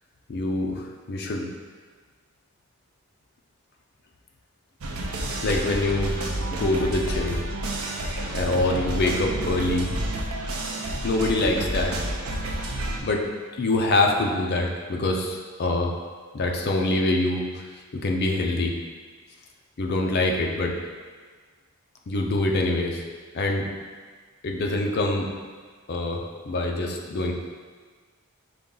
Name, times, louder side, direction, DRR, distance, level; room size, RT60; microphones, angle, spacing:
voice 1, 0.3-1.5 5.4-6.2 6.5-7.4 8.3-9.9 11.0-12.1 13.0-13.3 13.6-15.9 16.3-17.6 17.9-18.7 19.8-20.7 22.1-23.0 23.3-23.7 24.4-25.3 25.9-27.3, left 2 dB, 50° left, 1 dB, 0.5 m, -25 dB
sound 1, 4.8-13.0, right 1 dB, 75° right, 0.5 m, -30 dB
5.1 x 2.3 x 3.7 m, 1.5 s
head